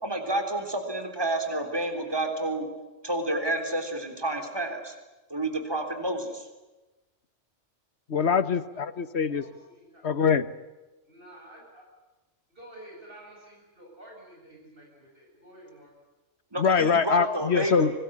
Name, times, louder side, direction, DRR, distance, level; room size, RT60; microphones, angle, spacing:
voice 1, 0.0-2.7 3.0-4.9 5.3-6.5 16.5-18.0, right 1 dB, 20° right, 6 dB, 3.8 m, -30 dB
voice 2, 8.1-9.4 10.0-10.5 16.6-17.9, left 6 dB, 60° left, 14 dB, 1.5 m, -23 dB
voice 3, 9.3-10.1 11.1-11.9 12.5-15.9, right 1 dB, 45° right, -2 dB, 7.5 m, -50 dB
25.5 x 20.5 x 9.9 m, 1.1 s
omnidirectional pair, 1.3 m